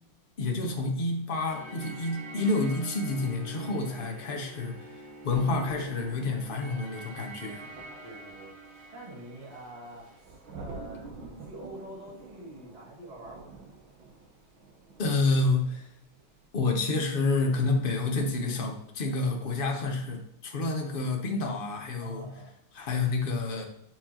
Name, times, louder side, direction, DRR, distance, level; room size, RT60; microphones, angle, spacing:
voice 1, 0.4-7.6 15.0-15.9 16.5-22.4 22.7-23.6, left 3 dB, 70° left, 2 dB, 0.5 m, -29 dB
sound 1, 1.5-10.2, right 3 dB, 40° right, 1.8 m, -46 dB
voice 2, 3.6-4.0 8.0-8.5 8.9-13.6 22.0-22.5, right 1 dB, 20° right, -7 dB, 1.8 m, -46 dB
Thunder, 5.3-15.9 16.2-16.5, right 3 dB, 75° right, 1.8 m, -48 dB
10.5 x 4.5 x 2.9 m, 0.77 s
omnidirectional pair, 2.3 m